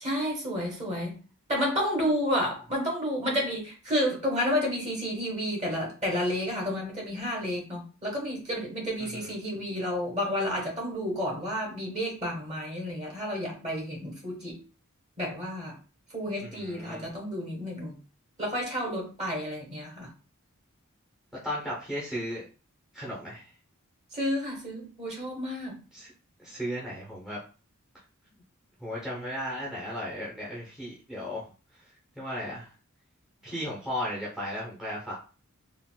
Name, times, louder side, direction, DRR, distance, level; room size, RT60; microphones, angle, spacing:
voice 1, 0.0-1.2 1.5-14.6 15.2-15.8 16.1-18.0 18.4-20.1 24.1-25.8, equal, 30° right, -2 dB, 1.3 m, -31 dB
voice 2, 9.0-9.3 16.4-17.1 21.4-22.5 22.9-23.5 25.9-26.1 26.4-27.4 28.8-31.5 31.7-31.8 32.2-32.7 33.4-35.1, equal, 5° right, -6 dB, 0.7 m, -35 dB
3.8 x 2.4 x 2.2 m, 0.35 s
head